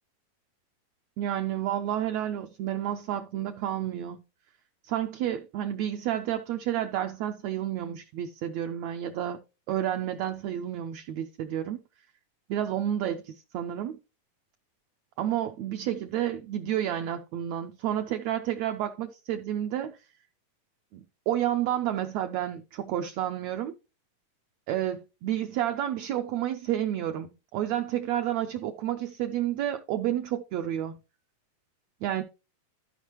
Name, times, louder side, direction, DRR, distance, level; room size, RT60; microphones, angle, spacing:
voice 1, 1.2-4.2 4.8-9.4 9.7-11.8 12.5-14.0 15.2-20.0 20.9-23.7 24.7-30.9 32.0-32.2, right 11 dB, 90° right, 1.5 m, -30 dB
13.5 x 5.3 x 3.0 m
omnidirectional pair, 3.9 m